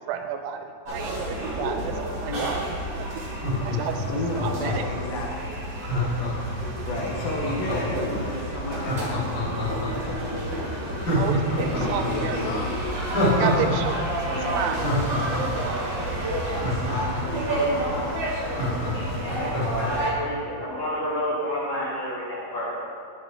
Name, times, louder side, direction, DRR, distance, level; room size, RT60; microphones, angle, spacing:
voice 1, 0.1-2.6 2.9-3.2 3.6-4.1 4.4-4.8 6.7-6.9 11.2-12.4 13.3-14.9, right 8 dB, 85° right, 6 dB, 2.7 m, -31 dB
sound 1, 0.9-20.1, right 1 dB, 55° right, 1.1 m, -30 dB
Laughter, 3.2-4.9 5.8-8.0 8.7-10.1 10.5-10.6 11.0-13.7 14.0-14.1 14.5-17.4 17.8-17.9 18.1-19.9 20.2-20.3, left 1 dB, 35° left, 2.1 m, -27 dB
voice 2, 4.1-5.5 6.7-9.8 10.0-11.1 11.8-12.8 13.1-13.2 14.3-14.8 16.5-18.4, left 1 dB, 75° left, -2 dB, 2.3 m, -33 dB
voice 3, 18.9-22.7, equal, 60° left, -8 dB, 1.9 m, -30 dB
8.0 x 7.6 x 3.3 m, 2.3 s
omnidirectional pair, 4.7 m